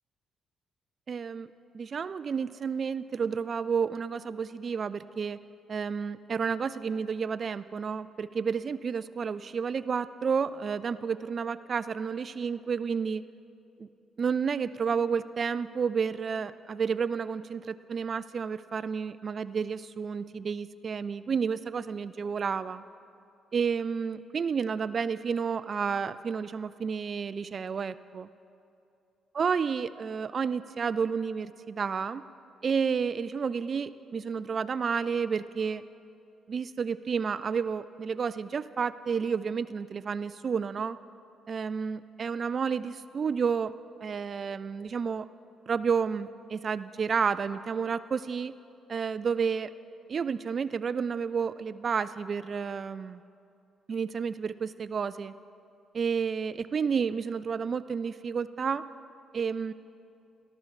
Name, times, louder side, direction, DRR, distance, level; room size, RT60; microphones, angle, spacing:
voice 1, 1.1-1.5 1.7-5.4 5.7-13.2 13.8-13.9 14.2-22.8 23.5-28.3 29.3-32.2 32.6-35.8 36.5-41.0 41.5-43.7 44.0-45.3 45.7-48.5 48.9-49.7 50.1-53.2 53.9-55.3 55.9-58.8 59.3-59.7, right 6 dB, 45° right, 15 dB, 0.3 m, -31 dB
14.0 x 13.5 x 4.8 m, 2.6 s
cardioid pair, 90°, 0 cm